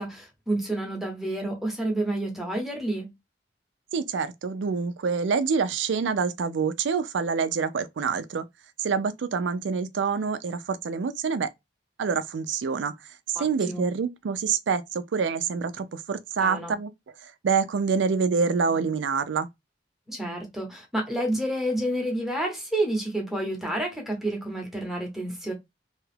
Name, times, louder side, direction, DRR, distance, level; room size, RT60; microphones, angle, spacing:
voice 1, 0.0-3.1 13.4-13.8 16.4-16.8 20.1-25.5, right 1 dB, ahead, 0.9 m, -29 dB
voice 2, 3.9-8.5 8.8-11.5 12.0-19.5, right 5 dB, 80° right, 0.4 m, -27 dB
2.8 x 2.3 x 3.2 m
head